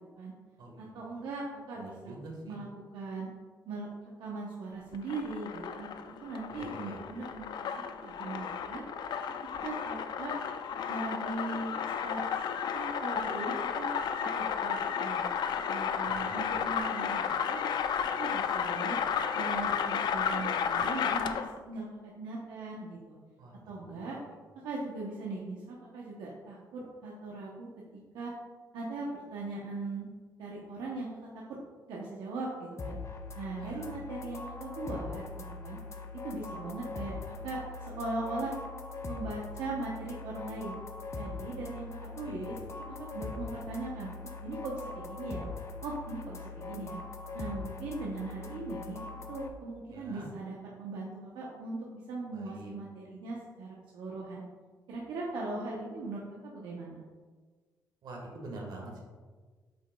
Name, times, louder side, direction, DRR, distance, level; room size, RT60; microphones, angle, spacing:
voice 1, 0.8-2.1 2.4-2.7 2.9-3.3 3.7-3.9 4.2-5.9 6.2-7.7 8.0-8.8 9.6-10.4 10.9-11.7 12.0-12.2 12.7-15.3 15.7-17.6 18.2-19.0 19.3-23.2 23.7-24.2 24.6-28.3 28.7-30.1 30.4-31.1 31.5-31.6 31.9-33.0 33.3-35.2 35.6-35.8 36.2-40.7 41.1-42.6 42.9-44.1 44.4-45.5 45.8-47.0 47.3-49.0 49.3-54.4 54.9-57.0, right 3 dB, 90° right, -3 dB, 0.8 m, -39 dB
voice 2, 1.8-2.6 6.5-7.0 16.1-16.4 23.4-24.0 33.6-33.9 42.2-42.6 49.9-50.3 52.3-52.7 58.0-59.0, right 2 dB, 70° right, 0 dB, 1.5 m, -46 dB
sound 1, 4.9-21.6, left 7 dB, 70° left, 0.4 m, -33 dB
sound 2, 32.8-49.5, left 3 dB, 40° left, 0.7 m, -42 dB
8.0 x 5.3 x 2.3 m, 1.5 s
cardioid pair, 90°, 8 cm